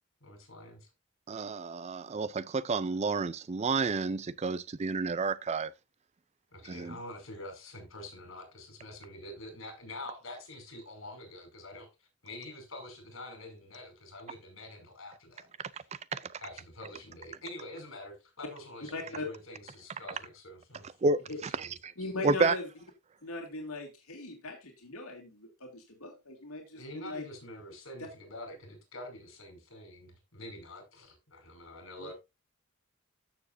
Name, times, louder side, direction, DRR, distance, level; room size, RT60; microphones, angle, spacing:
voice 1, 0.2-0.9 6.5-15.9 16.4-21.0 21.5-21.7 26.7-32.1, left 1 dB, 65° left, 5.4 m, -46 dB
voice 2, 1.3-5.7 6.7-7.0 16.1-16.2 21.0-21.2 22.2-22.5, right 3 dB, 30° right, 0.4 m, -30 dB
voice 3, 18.9-19.3 21.3-21.4 22.0-22.7 23.2-27.2 32.0-32.1, left 2 dB, 80° left, 2.4 m, -39 dB
13.5 x 7.1 x 2.6 m
head